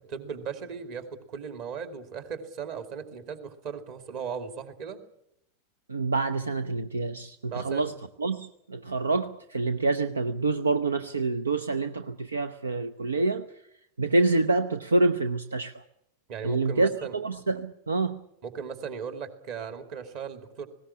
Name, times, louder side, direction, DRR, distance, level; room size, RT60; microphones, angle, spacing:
voice 1, 0.1-5.0 7.4-7.8 16.3-17.1 18.4-20.7, right 6 dB, 45° right, 9 dB, 2.5 m, -37 dB
voice 2, 5.9-13.5 14.0-15.8 16.4-18.2, right 3 dB, 75° right, 11 dB, 0.8 m, -27 dB
19.5 x 17.5 x 9.9 m, 0.78 s
figure-of-eight pair, 90°, 0 cm